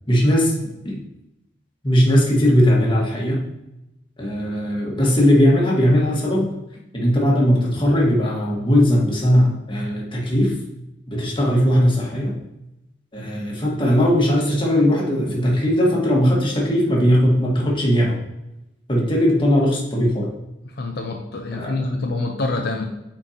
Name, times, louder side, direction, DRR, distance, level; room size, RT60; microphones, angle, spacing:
voice 1, 0.1-0.5 0.8-1.0 1.8-3.4 4.2-6.5 6.9-10.6 11.1-12.4 13.1-18.2 18.9-20.3 21.5-21.8, equal, 25° left, -3 dB, 1.6 m, -18 dB
voice 2, 20.7-22.9, left 2 dB, 55° left, 2 dB, 0.6 m, -26 dB
8.7 x 4.5 x 2.9 m, 0.91 s
head